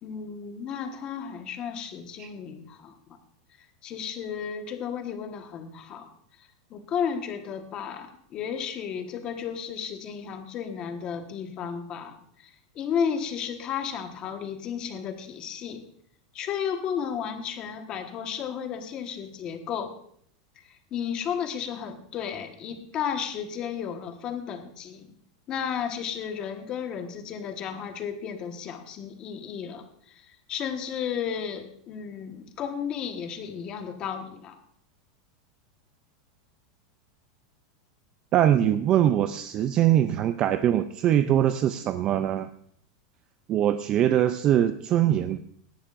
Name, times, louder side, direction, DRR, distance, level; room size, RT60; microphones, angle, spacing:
voice 1, 0.0-3.2 3.8-6.1 6.7-15.8 16.3-19.9 20.6-20.7 20.9-25.1 25.5-34.6, left 7 dB, 30° left, 6 dB, 1.3 m, -33 dB
voice 2, 38.3-42.5 43.5-45.4, right 11 dB, 30° right, 10 dB, 0.4 m, -22 dB
17.5 x 11.5 x 2.5 m, 0.65 s
supercardioid pair, 160°, 3 cm